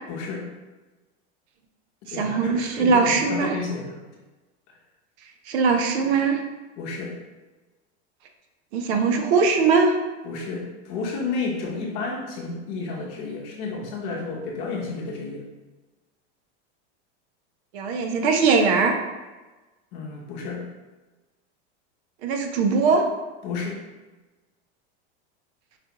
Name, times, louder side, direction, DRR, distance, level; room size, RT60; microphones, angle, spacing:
voice 1, 0.1-0.5 2.0-3.9 6.8-7.2 10.2-15.4 19.9-20.7 23.4-23.8, left 4 dB, 50° left, -1 dB, 0.8 m, -31 dB
voice 2, 2.1-3.5 5.5-6.4 8.7-10.0 17.7-19.0 22.2-23.1, right 4 dB, 75° right, 4 dB, 0.7 m, -21 dB
5.0 x 2.3 x 2.8 m, 1.2 s
supercardioid pair, 140°, 33 cm